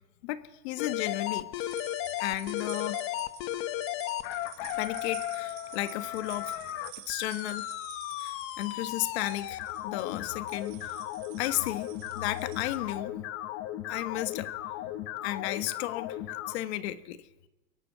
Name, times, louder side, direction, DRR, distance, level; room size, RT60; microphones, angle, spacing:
voice 1, 0.2-1.8 2.2-3.0 4.8-6.6 7.1-7.7 8.2-10.9 11.4-11.9 12.1-13.1 13.9-14.5 14.8-14.9 15.2-16.2 16.5-17.2, left 14 dB, 80° left, 11 dB, 1.5 m, -34 dB
sound 1, 0.8-16.5, left 14 dB, 45° left, 1.2 m, -36 dB
sound 2, 1.6-12.8, right 16 dB, 80° right, 3.1 m, -49 dB
23.0 x 18.0 x 8.7 m, 1.0 s
cardioid pair, 165°, 32 cm